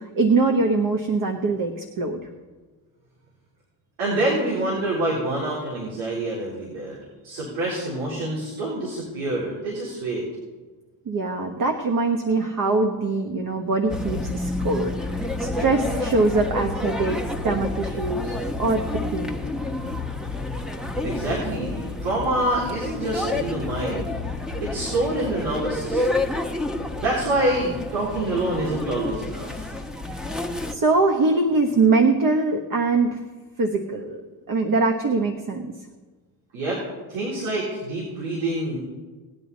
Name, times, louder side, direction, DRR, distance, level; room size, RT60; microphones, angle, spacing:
voice 1, 0.0-2.2 11.1-19.4 30.7-33.2 33.6-34.2 34.5-35.7, right 3 dB, 45° right, 4 dB, 1.3 m, -23 dB
voice 2, 4.0-7.0 7.2-10.2 21.0-24.1 24.6-26.3 27.0-29.8 36.5-36.8 37.1-38.8, right 1 dB, 90° right, -6 dB, 3.9 m, -26 dB
sound 1, 13.9-30.7, left 2 dB, ahead, 1.1 m, -29 dB
19.0 x 9.5 x 4.2 m, 1.3 s
supercardioid pair, 85°, 45 cm